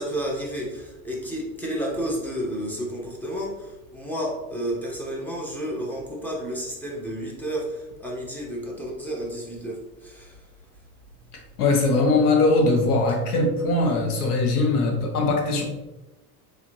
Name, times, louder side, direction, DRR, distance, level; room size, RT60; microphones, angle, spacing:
voice 1, 0.0-3.5 3.9-7.7 8.0-9.8 10.0-10.3, equal, 5° left, -3 dB, 1.4 m, -31 dB
voice 2, 11.6-15.6, left 2 dB, 90° left, 2 dB, 1.2 m, -21 dB
4.0 x 3.9 x 3.2 m, 1.0 s
hypercardioid pair, 100°, 44 cm